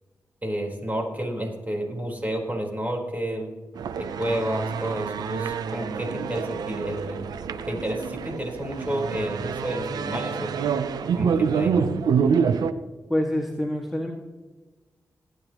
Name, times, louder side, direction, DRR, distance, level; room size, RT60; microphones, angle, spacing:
voice 1, 0.4-3.5 4.0-7.2 7.7-10.6 11.0-11.9, right 1 dB, 25° right, 0 dB, 4.1 m, -30 dB
sound 1, 3.8-12.7, right 6 dB, 90° right, 0.6 m, -27 dB
voice 2, 13.1-14.1, left 1 dB, ahead, -1 dB, 1.8 m, -26 dB
19.5 x 9.2 x 3.0 m, 1.3 s
cardioid pair, 50°, 7 cm